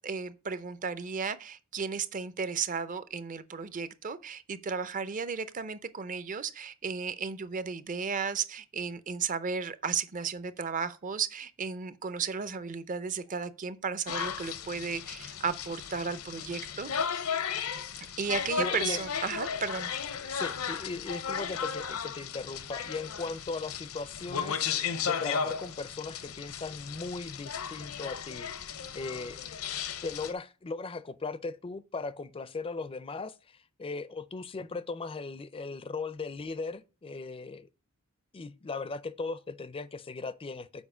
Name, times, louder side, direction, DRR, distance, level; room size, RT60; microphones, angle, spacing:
voice 1, 0.0-17.2 18.2-20.0, right 5 dB, 35° right, 0.6 m, -34 dB
sound 1, 14.1-30.3, left 7 dB, 75° left, 0.7 m, -35 dB
voice 2, 18.6-19.0 20.3-28.5 28.9-29.4 30.0-37.7 38.3-40.8, left 3 dB, 25° left, 0.4 m, -38 dB
7.2 x 4.8 x 4.9 m
head